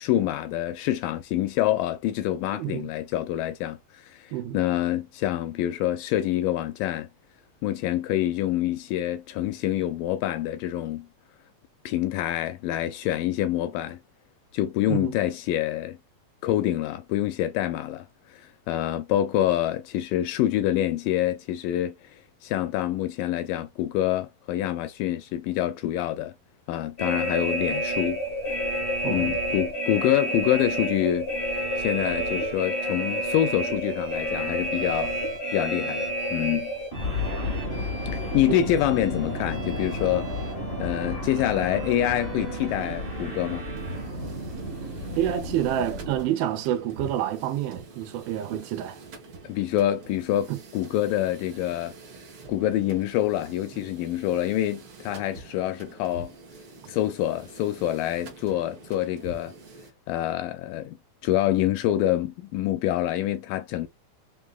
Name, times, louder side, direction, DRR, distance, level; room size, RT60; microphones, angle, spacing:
voice 1, 0.0-7.1 7.6-11.1 11.9-14.0 14.5-16.0 16.4-18.1 18.3-26.3 26.7-28.2 29.1-35.1 35.5-36.7 38.1-40.3 40.8-43.7 49.4-51.9 52.5-56.3 56.9-59.5 60.1-61.0 61.2-63.9, left 13 dB, 80° left, 2.1 m, -26 dB
voice 2, 2.5-2.9 4.3-4.6 14.9-15.1 29.0-29.3 38.5-38.6 45.2-49.0 50.5-50.6, right 11 dB, 80° right, 2.6 m, -28 dB
sound 1, 27.0-46.2, equal, 55° left, 0.6 m, -30 dB
Bowed string instrument, 31.6-44.1, right 2 dB, 25° right, 0.4 m, -43 dB
sound 2, 42.7-59.9, right 3 dB, 65° right, 1.3 m, -46 dB
5.4 x 3.5 x 2.3 m
omnidirectional pair, 4.3 m